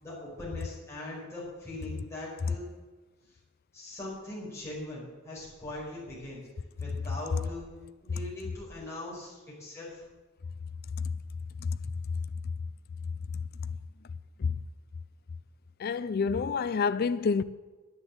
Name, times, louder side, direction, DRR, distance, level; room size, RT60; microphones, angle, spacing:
voice 1, 0.0-2.7 3.7-6.4 6.8-7.7 8.0-10.0, left 1 dB, 15° left, 4.9 m, -41 dB
voice 2, 13.3-13.8 14.4-14.6 15.8-17.4, left 5 dB, 50° left, 0.4 m, -29 dB
10.0 x 10.0 x 7.8 m
head